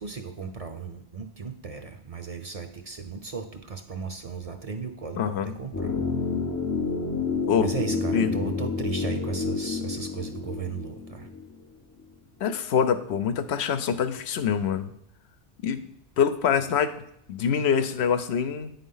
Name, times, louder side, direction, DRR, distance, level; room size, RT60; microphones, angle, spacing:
voice 1, 0.0-5.9 7.6-11.3, right 5 dB, 40° right, 6 dB, 0.6 m, -35 dB
voice 2, 5.2-5.6 7.5-7.7 8.1-8.4 12.4-14.9 15.6-15.8 16.2-17.0 17.3-18.7, left 7 dB, 85° left, 10 dB, 0.9 m, -25 dB
sound 1, 5.7-11.7 12.0-12.1, left 4 dB, 25° left, 0.4 m, -29 dB
9.1 x 3.9 x 5.5 m, 0.72 s
omnidirectional pair, 1.1 m